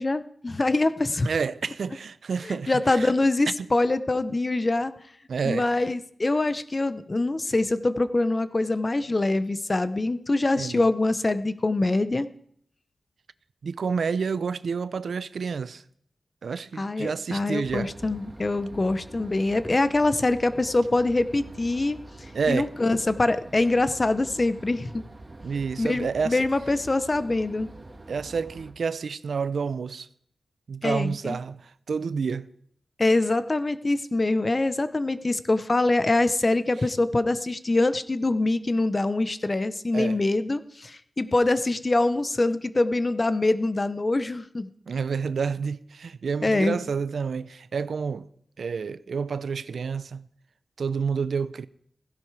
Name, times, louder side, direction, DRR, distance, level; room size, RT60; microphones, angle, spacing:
voice 1, 0.0-1.3 2.5-4.9 5.4-12.3 16.8-22.0 22.5-25.0 25.8-27.7 30.8-31.4 33.0-44.7 46.4-46.8, left 2 dB, 30° left, 0.8 m, -24 dB
voice 2, 1.2-3.1 3.6-3.7 5.3-5.7 10.6-10.9 13.6-15.8 16.4-17.9 22.3-22.7 25.4-26.4 28.1-30.1 30.7-32.5 39.9-40.2 44.9-48.3 48.6-50.3 50.8-51.7, right 5 dB, 85° right, 0.5 m, -29 dB
sound 1, 17.6-28.7, right 2 dB, 30° right, 2.0 m, -45 dB
16.0 x 15.5 x 4.8 m
wide cardioid pair, 120°, 0 cm